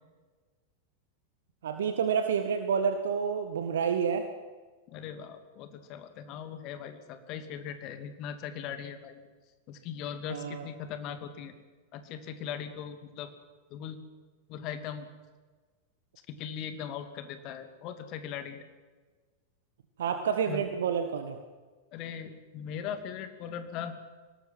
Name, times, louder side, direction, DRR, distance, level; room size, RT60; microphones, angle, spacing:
voice 1, 1.6-4.3 10.3-10.7 20.0-21.4, right 7 dB, 60° right, 7 dB, 1.6 m, -29 dB
voice 2, 4.9-9.3 9.7-11.5 11.9-13.3 13.7-14.0 14.5-15.1 16.3-18.6 20.4-20.6 21.9-23.9, left 8 dB, 40° left, 8 dB, 2.8 m, -39 dB
24.0 x 19.5 x 7.7 m, 1.4 s
figure-of-eight pair, 90°, 0 cm